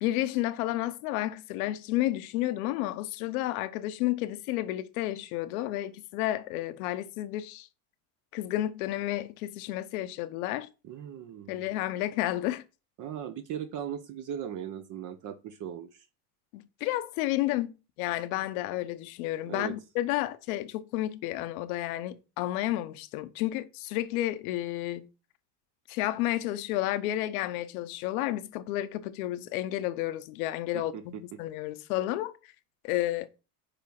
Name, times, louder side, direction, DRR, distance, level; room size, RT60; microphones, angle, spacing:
voice 1, 0.0-7.7 8.3-10.7 11.5-12.6 16.5-17.7 18.0-25.1 25.9-32.4 32.8-33.3, left 15 dB, 80° left, 1.1 m, -31 dB
voice 2, 10.8-11.7 13.0-16.1 19.5-19.8 30.7-31.0, right 9 dB, 45° right, 0.9 m, -38 dB
10.0 x 3.6 x 5.9 m
supercardioid pair, 125°, 42 cm